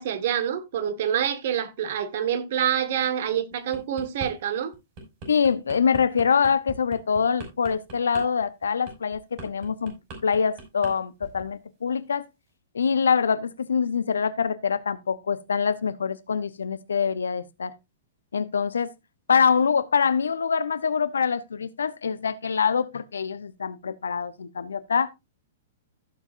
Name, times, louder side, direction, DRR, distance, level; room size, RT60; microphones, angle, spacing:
voice 1, 0.0-4.7, right 9 dB, 55° right, 1.6 m, -26 dB
sound 1, 3.5-4.3 4.7-10.9 11.2-11.5, right 2 dB, 40° right, 5.7 m, -40 dB
voice 2, 5.3-9.9 10.2-12.2 12.7-17.7 18.3-18.9 19.3-25.1, left 6 dB, 75° left, 0.8 m, -24 dB
15.5 x 7.3 x 2.6 m
figure-of-eight pair, 110°, 0 cm